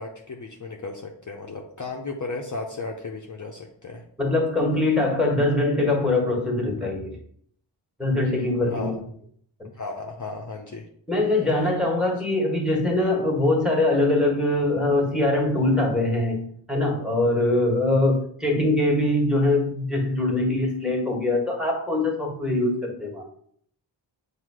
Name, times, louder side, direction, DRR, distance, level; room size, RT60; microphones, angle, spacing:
voice 1, 0.0-4.0 8.2-8.9 9.7-10.9, left 3 dB, 40° left, 1 dB, 0.7 m, -35 dB
voice 2, 4.2-7.2 8.0-9.0 11.1-23.2, left 2 dB, ahead, 0 dB, 1.6 m, -23 dB
7.6 x 2.8 x 4.8 m, 0.63 s
wide cardioid pair, 75°, 46 cm